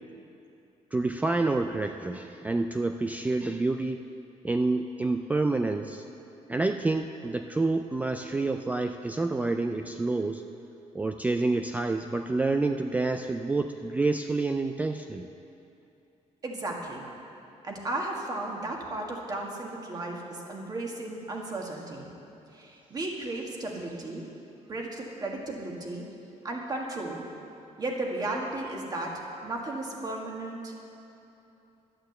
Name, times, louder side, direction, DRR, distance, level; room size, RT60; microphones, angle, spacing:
voice 1, 0.9-4.0 4.4-6.0 6.5-10.4 10.9-15.3, right 3 dB, 10° right, 6 dB, 0.3 m, -28 dB
voice 2, 16.4-17.0 17.6-22.1 22.5-24.2 24.7-26.1 26.4-27.3 27.8-30.8, right 2 dB, 30° right, 0 dB, 1.9 m, -34 dB
11.5 x 8.8 x 7.9 m, 2.9 s
cardioid pair, 150°, 12 cm